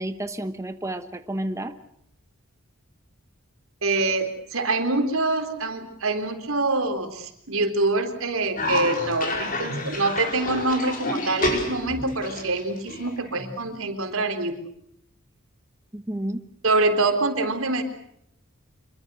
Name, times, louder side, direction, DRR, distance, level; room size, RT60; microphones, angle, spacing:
voice 1, 0.0-1.8 15.9-16.4, right 1 dB, 15° right, 9 dB, 1.0 m, -31 dB
voice 2, 3.8-14.7 16.6-17.8, right 2 dB, 85° right, 7 dB, 3.9 m, -25 dB
Cough, 8.6-13.6, left 2 dB, 40° left, 4.9 m, -29 dB
26.5 x 23.5 x 6.4 m, 0.74 s
head